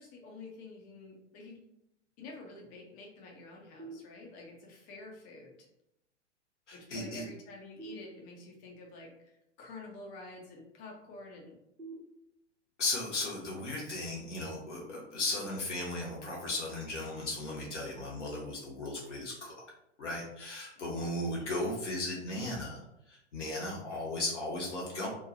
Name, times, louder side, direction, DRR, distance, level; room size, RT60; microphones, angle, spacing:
voice 1, 0.0-1.6 2.2-5.7 6.7-11.6 20.8-21.2, left 2 dB, 25° left, 0 dB, 0.5 m, -49 dB
sound 1, 3.8-4.7 7.8-8.8 11.8-12.8, right 3 dB, 85° right, 1.1 m, -50 dB
voice 2, 6.7-7.2 12.8-19.5 20.0-22.8 23.1-25.1, left 2 dB, 75° left, -4 dB, 0.9 m, -36 dB
2.9 x 2.2 x 2.5 m, 0.81 s
figure-of-eight pair, 105°, 36 cm